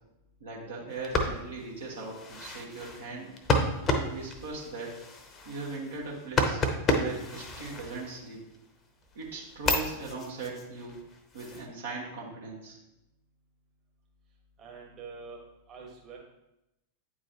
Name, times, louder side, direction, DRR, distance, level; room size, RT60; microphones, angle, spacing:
voice 1, 0.4-3.4 3.9-5.0 5.4-6.6 7.0-8.4 9.1-11.0 11.3-12.8, right 3 dB, 65° right, -3 dB, 1.4 m, -39 dB
sound 1, 0.9-8.6 9.0-11.7, left 2 dB, 25° left, 0.8 m, -32 dB
voice 2, 14.6-15.4 15.7-16.2, right 5 dB, 30° right, -2 dB, 1.5 m, -45 dB
8.8 x 4.6 x 3.0 m, 0.90 s
figure-of-eight pair, 90°, 0 cm